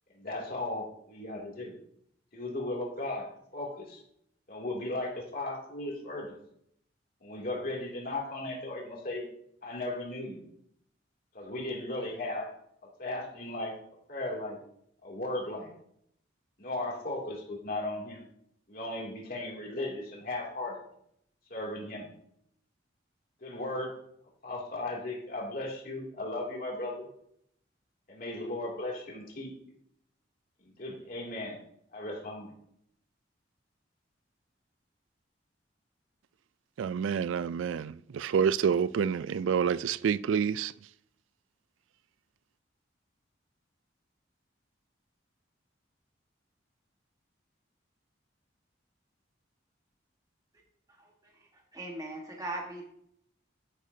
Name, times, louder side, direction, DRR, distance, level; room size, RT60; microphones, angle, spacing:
voice 1, 0.2-1.7 2.3-3.3 3.5-4.0 4.5-6.4 7.2-9.3 9.6-10.4 11.3-12.5 13.0-13.7 14.1-14.6 15.0-15.7 16.6-18.2 18.7-20.8 21.5-22.1 23.4-23.9 24.4-27.0 28.1-29.5 30.6-31.6 31.9-32.5, left 2 dB, 50° left, 2.7 m, -36 dB
voice 2, 36.8-40.7, right 7 dB, 90° right, 0.3 m, -28 dB
voice 3, 51.0-52.9, right 1 dB, 20° right, 1.5 m, -40 dB
10.5 x 10.0 x 2.8 m
head